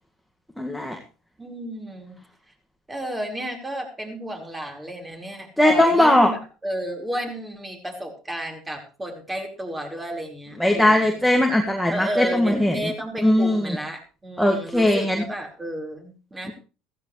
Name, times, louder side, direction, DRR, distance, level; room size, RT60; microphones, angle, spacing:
voice 1, 0.6-1.0 5.6-6.3 10.6-12.8 13.2-13.7 14.4-15.2, left 1 dB, ahead, 1 dB, 2.0 m, -19 dB
voice 2, 1.4-2.2 2.9-11.0 11.9-16.5, equal, 15° right, 2 dB, 4.8 m, -32 dB
15.0 x 15.0 x 3.3 m, 0.34 s
hypercardioid pair, 75°, 0 cm